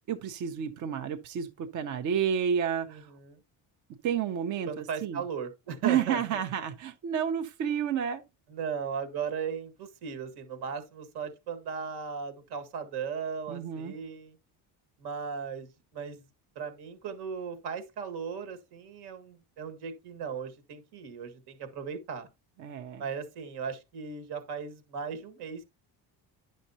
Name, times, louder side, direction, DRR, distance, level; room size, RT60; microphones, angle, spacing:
voice 1, 0.1-3.1 4.0-5.2 5.8-8.2 13.5-13.9 22.6-23.1, right 8 dB, 50° right, 0.7 m, -30 dB
voice 2, 2.9-3.4 4.7-6.2 8.5-14.3 15.0-16.2 16.6-22.3 23.0-25.7, right 6 dB, 75° right, 1.8 m, -37 dB
10.0 x 6.4 x 2.8 m
cardioid pair, 170°, 40 cm